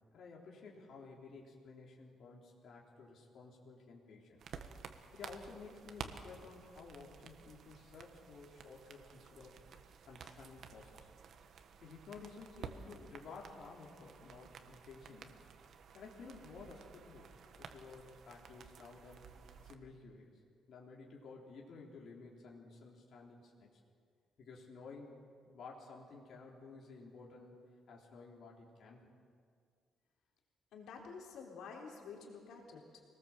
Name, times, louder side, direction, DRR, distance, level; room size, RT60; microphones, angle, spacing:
voice 1, 0.1-4.4 5.1-9.6 10.1-11.1 11.8-15.4 15.9-17.3 17.6-19.3 19.6-20.3 20.7-23.7 24.4-25.2 25.4-29.1, left 4 dB, 55° left, -2 dB, 3.7 m, -53 dB
sound 1, 4.4-19.7, right 6 dB, 55° right, 1.4 m, -53 dB
voice 2, 30.7-33.0, left 5 dB, 85° left, 0 dB, 3.9 m, -50 dB
25.5 x 19.0 x 7.5 m, 2.1 s
cardioid pair, 155°, 0 cm